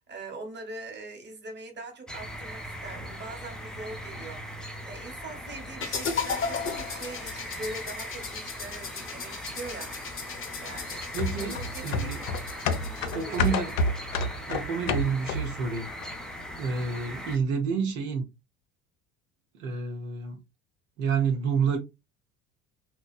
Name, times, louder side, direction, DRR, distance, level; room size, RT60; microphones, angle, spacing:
voice 1, 0.1-11.0 11.3-12.3 12.7-13.7, right 2 dB, 25° right, 1.1 m, -42 dB
sound 1, 2.1-17.4, equal, ahead, 0.4 m, -40 dB
sound 2, 5.8-13.8, left 5 dB, 30° left, 0.7 m, -36 dB
voice 2, 11.1-12.2 13.1-13.7 14.5-15.9 16.6-18.2 19.6-20.4 21.0-21.8, right 5 dB, 70° right, 0.7 m, -29 dB
sound 3, 11.2-15.6 16.0-16.1, left 2 dB, 70° left, 0.5 m, -29 dB
2.8 x 2.2 x 2.3 m
figure-of-eight pair, 65°, 42 cm